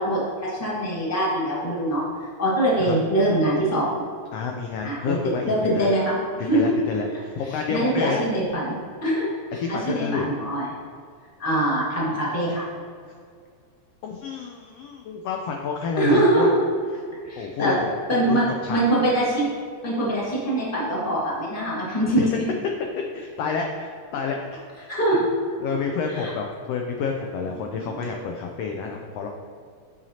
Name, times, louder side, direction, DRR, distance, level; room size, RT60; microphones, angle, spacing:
voice 1, 0.0-2.0 2.4-3.9 4.8-5.2 5.5-6.8 7.5-10.7 11.4-12.7 16.0-16.6 17.2-17.8 18.1-19.5 19.8-22.5 24.9-25.2 26.2-26.3 27.6-28.1, right 1 dB, 10° left, -6 dB, 0.8 m, -23 dB
voice 2, 4.3-5.9 6.5-8.2 9.5-10.3 14.0-16.6 17.4-17.7 18.3-18.8 22.2-22.3 23.1-25.0 25.6-29.3, left 5 dB, 85° left, 2 dB, 1.4 m, -29 dB
9.0 x 5.9 x 2.8 m, 2.1 s
omnidirectional pair, 3.4 m